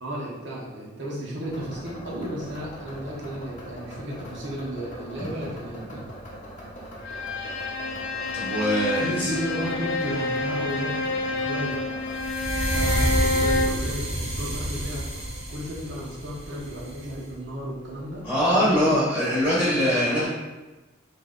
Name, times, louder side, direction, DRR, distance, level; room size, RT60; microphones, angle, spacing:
voice 1, 0.0-6.0 8.4-8.5 9.0-11.8 12.7-15.0 15.5-18.3 18.5-19.6 20.0-20.3, equal, 65° right, -4 dB, 0.8 m, -33 dB
sound 1, 1.4-19.0, equal, 40° left, 0.7 m, -43 dB
Bowed string instrument, 7.0-13.9, left 2 dB, 85° left, 0.5 m, -28 dB
voice 2, 8.3-9.3 18.2-20.3, equal, 5° right, -10 dB, 0.9 m, -23 dB
sound 2, 12.2-17.2, right 1 dB, 30° right, 0.6 m, -28 dB
2.9 x 2.6 x 3.6 m, 1.1 s
head